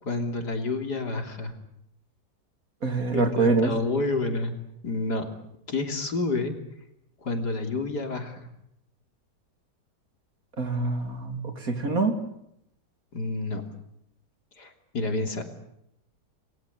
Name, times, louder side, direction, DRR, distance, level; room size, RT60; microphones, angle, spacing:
voice 1, 0.0-1.5 3.1-4.6 4.8-5.3 5.7-6.6 7.2-8.5 13.1-13.6 14.6-15.5, left 2 dB, 70° left, 6 dB, 3.8 m, -29 dB
voice 2, 2.8-3.7 10.6-12.2, right 3 dB, 55° right, 7 dB, 3.5 m, -25 dB
29.5 x 21.5 x 8.4 m, 0.77 s
omnidirectional pair, 1.8 m